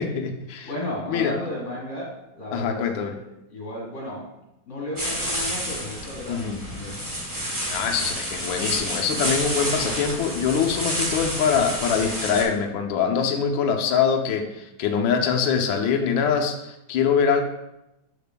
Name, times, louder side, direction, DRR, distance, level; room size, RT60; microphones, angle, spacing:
voice 1, 0.0-0.7 1.1-1.3 2.5-3.1 6.3-6.6 7.7-17.4, left 6 dB, 80° left, 3 dB, 1.4 m, -23 dB
voice 2, 0.6-4.2 4.7-7.0, left 1 dB, 40° left, -4 dB, 2.2 m, -34 dB
sound 1, 5.0-12.4, equal, 15° right, 0.8 m, -29 dB
6.8 x 6.8 x 2.2 m, 0.90 s
omnidirectional pair, 2.1 m